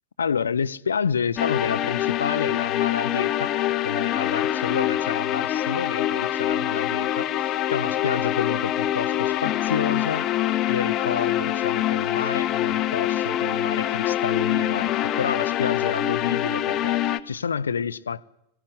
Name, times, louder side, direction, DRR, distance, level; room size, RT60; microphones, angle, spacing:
voice 1, 0.2-3.5 3.8-10.3 10.7-18.2, left 6 dB, 70° left, 0.9 m, -29 dB
sound 1, 1.4-17.2, left 12 dB, 35° left, 1.2 m, -25 dB
24.5 x 16.0 x 8.1 m
figure-of-eight pair, 90°, 0 cm